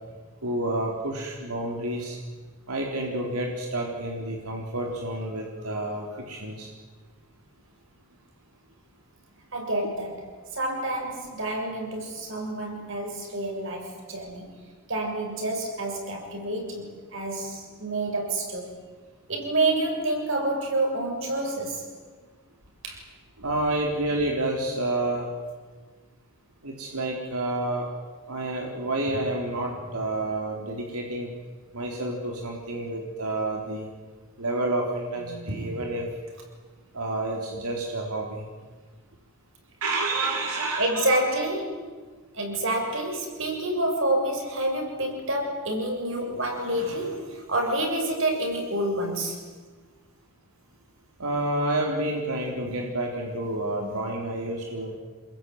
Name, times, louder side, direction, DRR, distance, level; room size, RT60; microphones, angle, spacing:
voice 1, 0.4-2.2 2.7-6.7 23.4-25.3 26.6-27.9 28.3-31.3 31.7-33.9 34.4-36.1 36.9-38.4 39.8-41.1 51.2-54.9, right 2 dB, 90° right, 0 dB, 4.0 m, -29 dB
voice 2, 9.5-14.5 14.9-18.8 19.3-21.9 22.8-23.0 35.2-35.9 40.8-41.9 42.3-49.4, right 1 dB, 60° right, 2 dB, 7.3 m, -28 dB
28.0 x 22.0 x 9.6 m, 1.4 s
head